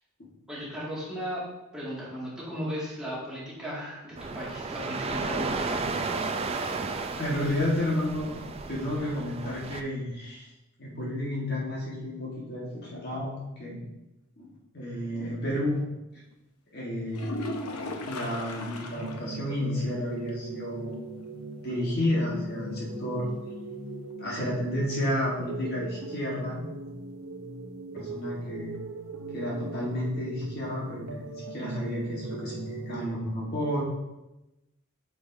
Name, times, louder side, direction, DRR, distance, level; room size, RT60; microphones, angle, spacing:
voice 1, 0.5-1.4 1.7-6.0, equal, 5° right, -8 dB, 2.0 m, -36 dB
sound 1, 4.2-9.8, right 4 dB, 25° right, 0.3 m, -33 dB
voice 2, 7.2-8.3 8.7-10.5 10.8-13.3 13.6-13.8 14.4-14.5 14.7-15.8 16.7-17.6 18.0-21.3 21.6-23.3 24.2-26.6 27.9-28.7 29.3-33.8, left 1 dB, 45° left, -4 dB, 1.4 m, -31 dB
sound 2, 17.1-19.4 19.7-19.8 20.2-20.3 24.1-24.2, left 2 dB, 90° left, 0.7 m, -36 dB
sound 3, 18.9-33.1, right 2 dB, 75° right, 0.9 m, -39 dB
8.4 x 5.1 x 2.6 m, 0.98 s
head